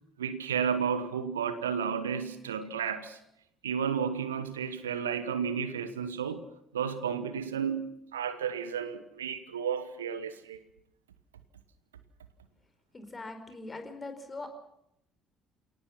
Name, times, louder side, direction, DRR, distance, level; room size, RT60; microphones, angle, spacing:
voice 1, 0.2-3.2 3.6-6.4 6.7-10.6, right 7 dB, 80° right, 1.1 m, -32 dB
voice 2, 12.9-14.5, left 2 dB, 25° left, 4.6 m, -41 dB
29.0 x 18.5 x 5.8 m
figure-of-eight pair, 50°, 0 cm